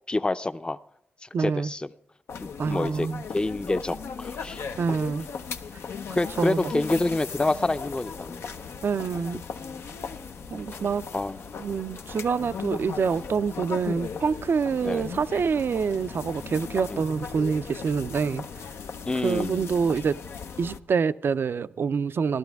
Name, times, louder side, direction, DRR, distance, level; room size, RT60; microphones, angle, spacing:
voice 1, 0.1-0.8 1.2-1.9 2.4-3.1 3.3-4.6 6.2-8.4 11.1-11.4 14.8-15.1 16.9-17.0 19.1-19.7, left 2 dB, 25° left, 0.5 m, -27 dB
voice 2, 1.3-1.7 2.6-3.2 4.8-5.3 6.1-6.7 8.8-9.4 10.5-11.1 11.6-18.4 19.2-20.2 20.6-22.4, right 5 dB, 65° right, 0.4 m, -26 dB
sound 1, 2.3-20.8, left 6 dB, 85° left, 0.6 m, -37 dB
sound 2, 4.4-14.9, left 3 dB, 55° left, 1.2 m, -50 dB
15.5 x 12.0 x 3.5 m
cardioid pair, 65°, 4 cm